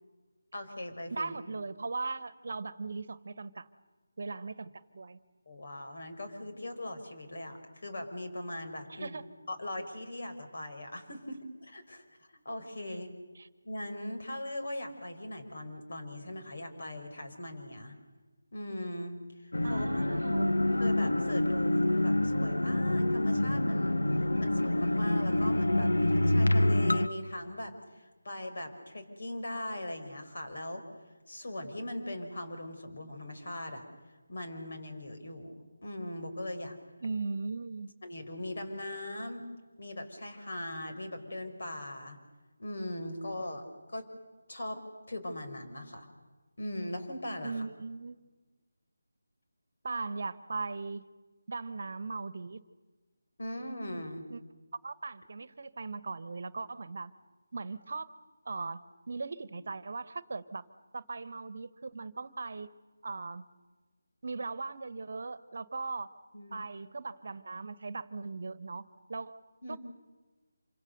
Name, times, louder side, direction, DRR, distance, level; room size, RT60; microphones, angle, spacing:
voice 1, 0.5-1.3 5.5-9.2 9.5-13.1 13.6-18.0 18.5-19.9 20.8-30.9 31.3-33.8 34.3-36.8 38.0-39.4 39.8-42.2 42.6-44.1 44.5-44.8 45.1-46.1 46.6-47.7 53.4-54.3 66.3-66.6 69.6-69.8, left 1 dB, 60° left, 5 dB, 4.7 m, -40 dB
voice 2, 1.1-3.7 4.2-5.2 8.9-9.2 13.4-13.5 19.6-20.5 37.0-37.9 47.4-48.2 49.8-51.0 51.5-52.6 54.3-54.4 54.8-57.1 57.5-58.1 58.4-58.8 59.1-60.7 60.9-62.7 63.0-63.5 64.2-66.1 66.5-69.3 69.7-69.8, right 3 dB, 55° right, 16 dB, 1.2 m, -38 dB
sound 1, 19.5-27.1, left 1 dB, 85° left, 1.1 m, -27 dB
27.0 x 25.0 x 6.8 m, 1.3 s
figure-of-eight pair, 160°, 0 cm